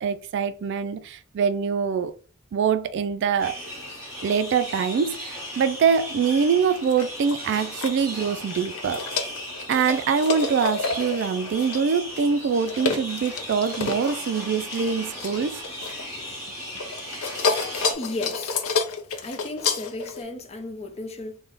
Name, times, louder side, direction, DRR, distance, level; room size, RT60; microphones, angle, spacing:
voice 1, 0.0-2.1 2.5-3.6 4.2-9.0 9.7-15.6, right 6 dB, 55° right, 0.3 m, -24 dB
sound 1, 3.4-17.9, equal, 10° right, 1.6 m, -37 dB
sound 2, 6.8-8.0 8.5-16.4 16.7-20.2, left 4 dB, 90° left, 0.6 m, -30 dB
voice 2, 18.0-18.6 19.2-21.4, left 2 dB, 30° left, 0.6 m, -34 dB
3.4 x 2.2 x 3.9 m
head